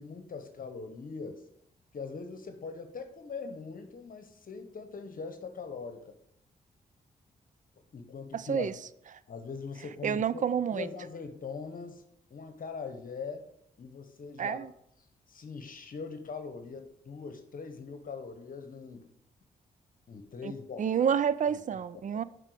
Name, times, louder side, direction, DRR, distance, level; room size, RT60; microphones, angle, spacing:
voice 1, 0.0-1.5 1.9-6.1 7.9-8.8 9.3-10.4 10.7-12.0 12.3-13.5 13.8-14.7 15.3-19.1 20.1-21.1 21.5-21.6 21.9-22.2, left 5 dB, 55° left, 1.1 m, -41 dB
voice 2, 8.3-8.7 10.0-10.9 14.4-14.7 20.4-20.5 20.8-22.2, right 8 dB, 45° right, 0.5 m, -29 dB
7.4 x 5.3 x 4.9 m
supercardioid pair, 50°, 17 cm